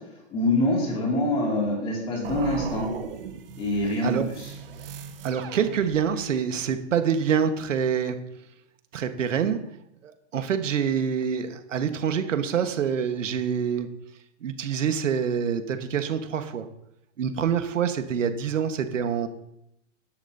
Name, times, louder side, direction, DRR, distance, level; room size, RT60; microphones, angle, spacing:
voice 1, 0.3-2.9 3.6-4.5, left 1 dB, 15° left, -2 dB, 2.6 m, -25 dB
sound 1, 2.2-6.4, right 7 dB, 50° right, 1.2 m, -38 dB
voice 2, 5.2-8.2 8.9-9.6 10.0-13.9 14.4-16.7 17.2-19.3, right 7 dB, 85° right, 7 dB, 1.5 m, -26 dB
14.5 x 10.5 x 2.8 m, 0.80 s
hypercardioid pair, 170°, 37 cm